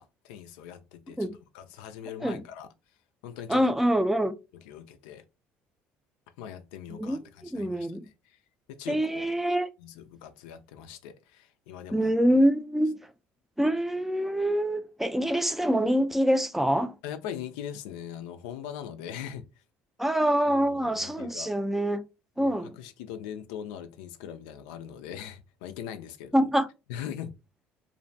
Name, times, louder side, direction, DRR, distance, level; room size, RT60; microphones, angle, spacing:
voice 1, 0.0-1.3 1.5-2.7 3.2-3.6 4.5-5.2 6.4-7.9 8.3-8.4 8.7-9.3 9.8-12.1 17.0-19.4 20.5-21.5 22.4-26.4 26.9-27.3, left 9 dB, 90° left, 0.3 m, -41 dB
voice 2, 3.5-4.3 6.9-7.2 7.5-8.1 8.9-9.7 11.9-13.0 13.6-17.0 20.0-22.0 22.4-22.8 26.3-26.7, equal, 5° right, 0.3 m, -25 dB
2.5 x 2.1 x 2.6 m
supercardioid pair, 85°, 5 cm